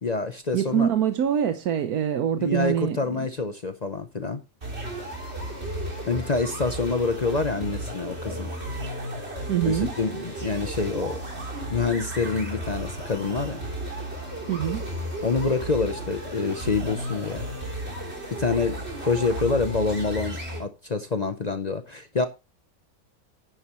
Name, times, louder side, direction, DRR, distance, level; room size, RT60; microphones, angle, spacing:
voice 1, 0.0-0.9 2.4-4.4 6.1-8.5 9.7-11.2 11.7-13.6 15.2-17.4 18.3-22.2, left 4 dB, 40° left, 0.6 m, -27 dB
voice 2, 0.5-3.3 9.5-9.9 14.5-14.9, right 9 dB, 80° right, 1.3 m, -25 dB
sound 1, 4.6-20.6, right 1 dB, 45° right, 3.6 m, -34 dB
10.5 x 9.1 x 3.0 m
omnidirectional pair, 1.6 m